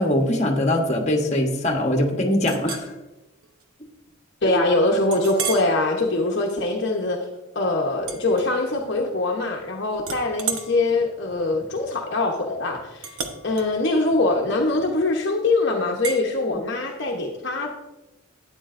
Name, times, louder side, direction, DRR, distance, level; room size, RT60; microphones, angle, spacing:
voice 1, 0.0-2.9 4.5-4.6, left 1 dB, 30° left, 2 dB, 1.2 m, -22 dB
Chink clink, 2.4-2.9 3.4-3.6 4.1-4.2 5.1-5.7 6.3-6.5 8.0-9.0 9.3-9.7 10.0-15.1 16.0-16.2, right 6 dB, 85° right, 1.1 m, -34 dB
voice 2, 4.4-7.2 7.5-13.2 13.4-17.7, left 2 dB, 55° left, 0 dB, 1.0 m, -23 dB
12.0 x 9.1 x 2.6 m, 1.0 s
head